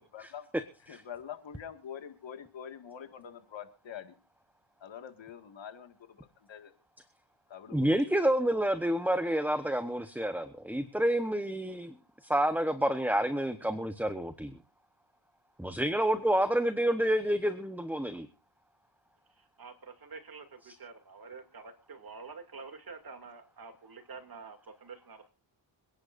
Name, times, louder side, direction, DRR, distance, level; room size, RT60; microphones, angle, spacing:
voice 1, 0.1-0.5 0.9-4.2 4.8-6.7 7.5-7.9, left 8 dB, 70° left, 8 dB, 2.0 m, -45 dB
voice 2, 7.7-11.9 12.2-14.5 15.6-18.3, right 1 dB, 5° right, 10 dB, 1.0 m, -29 dB
voice 3, 19.4-25.3, right 4 dB, 50° right, 6 dB, 2.7 m, -48 dB
27.0 x 10.5 x 2.6 m, 0.34 s
cardioid pair, 90°, 47 cm